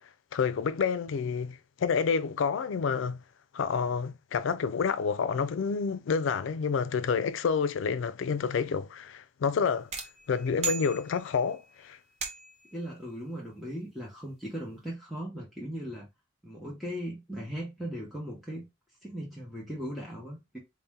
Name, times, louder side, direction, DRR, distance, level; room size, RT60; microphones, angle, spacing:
voice 1, 0.3-3.2 3.5-9.9 10.3-12.0, left 6 dB, 90° left, 0.4 m, -29 dB
sound 1, 9.9-11.5 12.2-12.7, right 5 dB, 35° right, 0.8 m, -37 dB
voice 2, 12.7-16.1 16.4-18.6 19.0-20.6, equal, ahead, 0.8 m, -38 dB
4.1 x 2.1 x 3.5 m
head